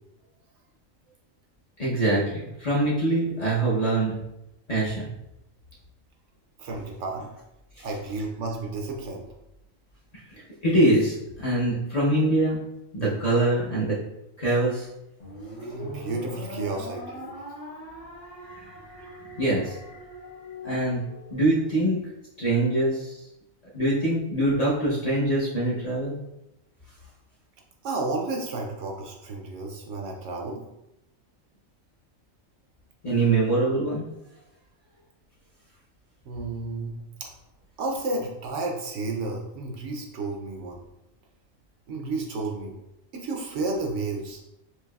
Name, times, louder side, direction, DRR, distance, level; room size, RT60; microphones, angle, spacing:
voice 1, 1.8-4.2 4.7-5.1 7.8-7.9 10.6-12.6 12.9-14.0 14.4-14.9 18.2-19.9 20.6-21.0 21.3-22.0 22.4-23.2 23.7-26.2 33.0-34.1, right 2 dB, 40° left, -7 dB, 0.7 m, -24 dB
voice 2, 6.6-7.3 7.8-9.2 15.6-17.5 19.0-19.1 27.8-30.6 36.3-37.3 37.8-40.8 41.9-42.7 43.1-44.4, right 3 dB, 70° right, 1 dB, 0.9 m, -32 dB
sound 1, 15.2-21.7, equal, 70° left, 1.3 m, -41 dB
4.6 x 2.8 x 2.3 m, 0.89 s
omnidirectional pair, 1.4 m